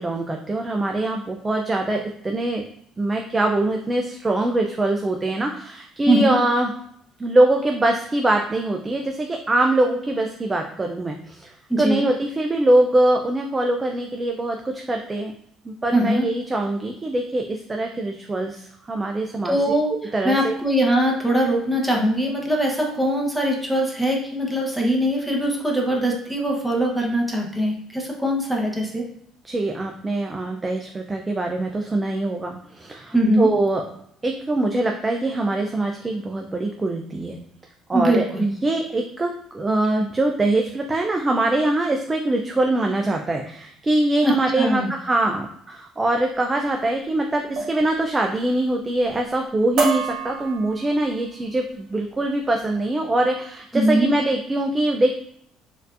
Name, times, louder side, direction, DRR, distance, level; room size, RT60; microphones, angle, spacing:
voice 1, 0.0-2.6 3.0-6.7 7.2-15.3 15.6-19.6 20.1-20.6 29.4-33.8 34.2-37.4 37.9-55.1, right 2 dB, 20° right, 2 dB, 0.4 m, -23 dB
voice 2, 6.1-6.4 11.7-12.0 15.9-16.3 19.4-19.9 20.2-29.1 33.1-33.5 37.9-38.4 44.2-44.9 53.7-54.1, right 1 dB, ahead, -1 dB, 0.9 m, -21 dB
sound 1, 46.6-46.8 47.6-47.9 48.2-48.7 49.1-49.4 49.8-51.1 51.7-51.9 52.3-52.6, right 4 dB, 70° right, 1.5 m, -29 dB
4.4 x 2.6 x 2.5 m, 0.68 s
cardioid pair, 105°, 0 cm